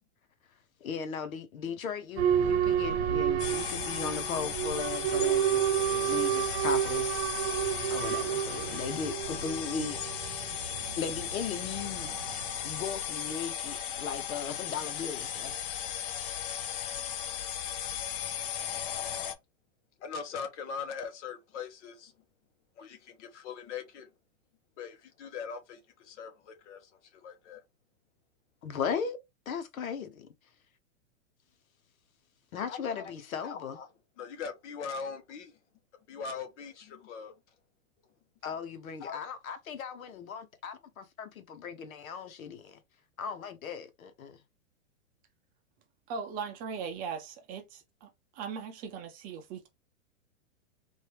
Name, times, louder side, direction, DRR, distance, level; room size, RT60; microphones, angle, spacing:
voice 1, 0.8-7.3 7.9-10.0 11.0-12.2 12.6-15.5 28.6-29.2 29.5-30.3 32.5-33.8 38.4-42.8 43.2-44.4, left 6 dB, 85° left, 1.1 m, -37 dB
Boat Water vehicle / Alarm, 2.2-12.8, right 10 dB, 50° right, 0.9 m, -30 dB
sound 1, 3.4-19.3, left 9 dB, 40° left, 0.7 m, -36 dB
voice 2, 20.0-22.1 22.8-24.1 24.8-27.6 32.7-33.0 33.4-33.9 34.2-35.6 36.1-37.3 39.0-39.2, left 6 dB, 60° left, 1.3 m, -41 dB
voice 3, 46.1-49.7, right 6 dB, 20° right, 0.6 m, -39 dB
4.4 x 2.7 x 3.4 m
hypercardioid pair, 145°, 41 cm